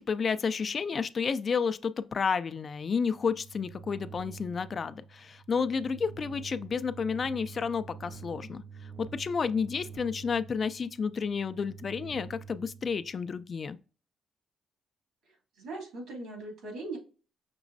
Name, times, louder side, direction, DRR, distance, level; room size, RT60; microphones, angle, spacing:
voice 1, 0.1-13.8, left 5 dB, 45° left, 0.3 m, -31 dB
sound 1, 2.8-13.5, right 6 dB, 60° right, 0.4 m, -47 dB
voice 2, 15.3-17.0, right 2 dB, 80° right, 2.5 m, -40 dB
6.0 x 3.0 x 2.6 m
cardioid pair, 90°, 0 cm